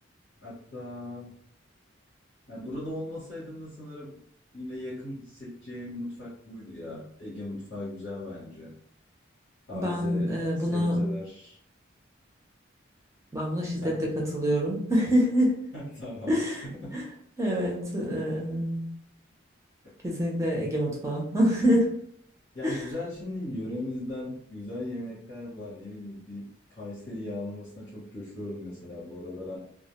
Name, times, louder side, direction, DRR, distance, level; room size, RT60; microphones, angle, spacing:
voice 1, 0.4-1.4 2.5-4.2 4.5-8.7 9.7-10.3 10.7-11.6 13.8-14.1 15.7-16.4 16.8-17.0 22.5-29.6, left 1 dB, 75° left, -10 dB, 1.0 m, -38 dB
voice 2, 9.7-11.0 13.3-15.7 16.3-16.6 16.9-17.0 17.4-18.9 20.0-22.0 22.6-22.8, equal, 15° right, -2 dB, 0.5 m, -26 dB
2.3 x 2.1 x 2.9 m, 0.64 s
head